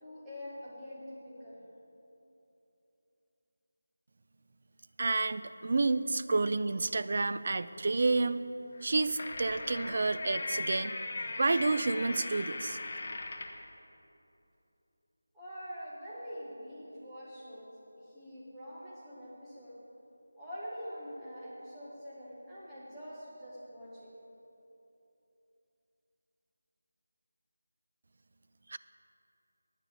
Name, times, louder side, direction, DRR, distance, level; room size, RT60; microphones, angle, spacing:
voice 1, 0.0-1.6 15.3-17.7 18.1-19.7 20.4-24.1, equal, 5° right, -11 dB, 1.1 m, -45 dB
voice 2, 5.0-8.4 8.8-10.9 11.4-12.8 28.7-28.8, right 3 dB, 35° right, 13 dB, 0.3 m, -30 dB
sound 1, 8.8-13.6, left 2 dB, 30° left, 0.7 m, -39 dB
10.5 x 7.1 x 8.2 m, 2.9 s
figure-of-eight pair, 180°, 0 cm